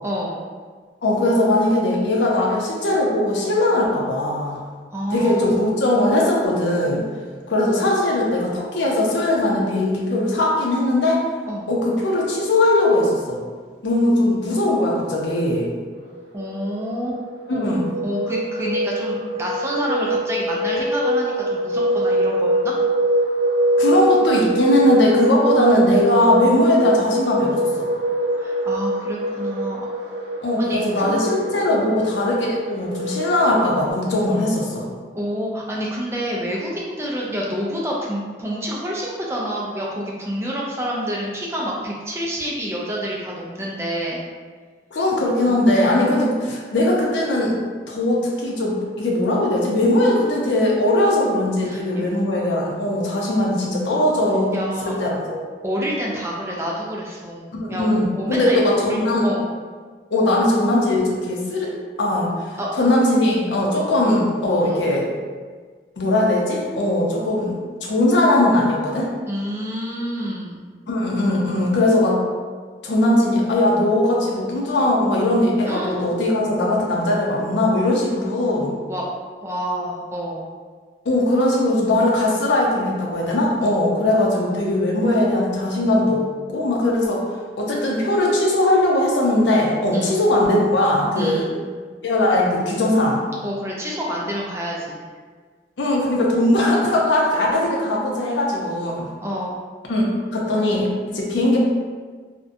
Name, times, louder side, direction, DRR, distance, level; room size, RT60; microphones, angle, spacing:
voice 1, 0.0-0.4 4.9-5.7 11.5-11.7 16.3-17.2 17.5-22.7 28.4-29.9 30.6-31.2 31.7-31.8 35.1-44.2 45.5-45.6 45.9-46.2 51.7-52.1 54.5-54.9 55.6-59.4 62.6-62.7 64.6-64.8 69.3-70.7 75.7-76.0 78.9-79.0 79.4-80.5 89.9-90.2 91.1-91.6 93.4-95.0 99.2-99.6, equal, 15° right, -3 dB, 0.3 m, -28 dB
voice 2, 1.0-4.6 5.1-7.0 7.5-11.2 11.7-13.4 13.8-15.7 17.5-18.0 23.8-27.9 30.4-34.8 44.9-47.6 47.9-54.5 54.8-55.4 57.6-59.3 60.1-61.7 62.0-65.1 66.0-69.1 70.9-72.2 72.8-78.7 81.1-87.2 87.6-91.5 92.0-93.2 95.8-99.1 99.9-100.1 100.3-101.6, left 1 dB, 90° left, -2 dB, 0.5 m, -20 dB
sound 1, 16.2-33.9, right 1 dB, 85° right, 0.4 m, -23 dB
2.5 x 2.1 x 2.5 m, 1.5 s
head